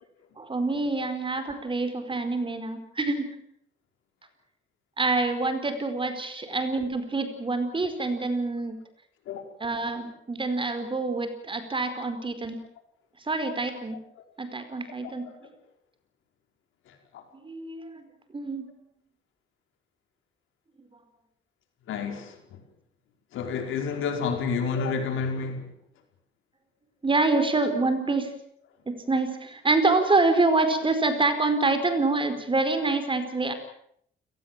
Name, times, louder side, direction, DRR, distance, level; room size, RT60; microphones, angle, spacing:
voice 1, 0.4-3.3 5.0-8.8 9.6-12.6 13.2-14.0 14.4-15.3 17.4-18.7 27.0-28.3 28.9-33.5, right 3 dB, 25° right, 4.9 m, -26 dB
voice 2, 16.9-17.2 21.9-22.6 23.3-25.7, left 5 dB, 85° left, 5.0 m, -30 dB
29.5 x 18.5 x 7.6 m
cardioid pair, 90°, 20 cm